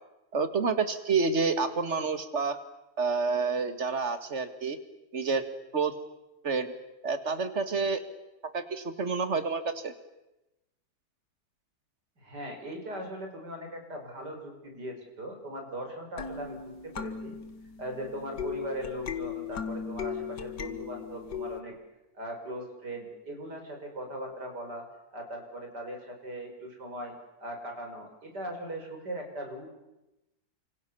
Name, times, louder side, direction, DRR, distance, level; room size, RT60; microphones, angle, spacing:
voice 1, 0.3-2.6 3.0-4.8 5.1-5.4 5.7-5.9 6.4-6.7 7.0-8.0 8.5-9.9, right 4 dB, 45° right, 10 dB, 2.1 m, -28 dB
voice 2, 12.2-17.4 17.8-21.8 22.1-24.8 25.1-27.1 27.4-29.7, right 1 dB, 85° right, 3 dB, 6.1 m, -39 dB
sound 1, 16.2-21.6, left 7 dB, 85° left, 2.3 m, -37 dB
30.0 x 26.0 x 7.0 m, 0.97 s
omnidirectional pair, 1.8 m